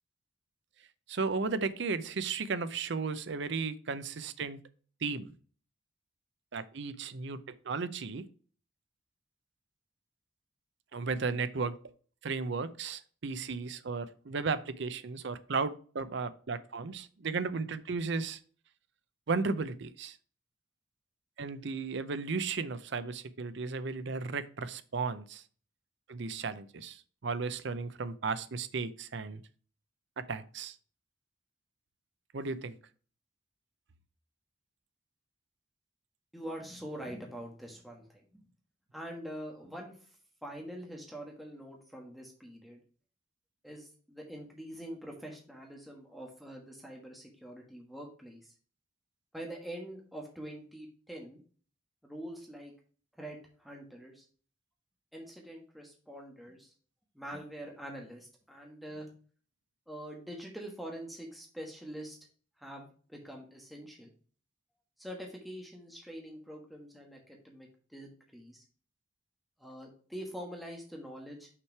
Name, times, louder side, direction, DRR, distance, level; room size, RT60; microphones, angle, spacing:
voice 1, 1.1-4.6 5.0-5.3 6.5-8.3 10.9-11.8 12.2-18.4 19.3-20.2 21.4-25.4 26.1-29.4 30.2-30.8 32.3-32.8, right 4 dB, 60° right, 0.6 m, -35 dB
voice 2, 36.3-38.4 38.9-40.1 40.4-42.8 43.6-48.5 49.3-51.4 52.0-52.7 53.2-54.2 55.1-56.7 57.1-59.1 59.9-62.2 62.6-64.1 65.0-68.6 69.6-71.5, equal, ahead, 1.3 m, -45 dB
5.9 x 4.9 x 4.5 m
head